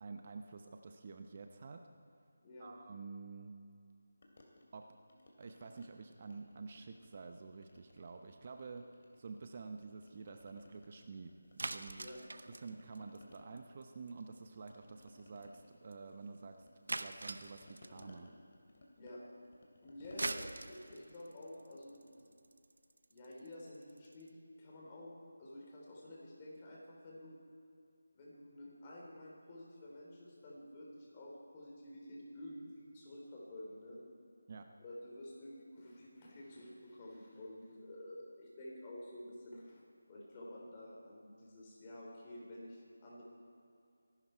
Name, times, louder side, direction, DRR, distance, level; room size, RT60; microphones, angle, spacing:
voice 1, 0.0-1.8 2.6-3.5 4.7-4.8 5.4-8.8 9.2-12.1 12.6-16.6 16.9-18.3 34.5-34.7, right 4 dB, 40° right, 6 dB, 0.8 m, -49 dB
voice 2, 2.4-2.7 11.9-12.2 19.0-19.2 19.8-22.3 23.1-24.3 24.6-25.1 25.4-27.3 28.1-34.0 34.8-39.8 40.1-43.2, left 1 dB, 25° left, -4 dB, 3.7 m, -50 dB
sound 1, 4.2-5.9 6.2-7.3 7.6-9.5 9.8-12.2 12.5-22.3, left 1 dB, 45° left, 2.8 m, -63 dB
sound 2, 11.6-13.8 14.1-14.4 14.7-14.8 15.0-15.1 15.4-15.5 15.9-16.0 16.9-18.1 19.9-24.3, right 2 dB, 70° right, 0.8 m, -43 dB
24.5 x 12.0 x 4.5 m, 2.5 s
figure-of-eight pair, 165°, 0 cm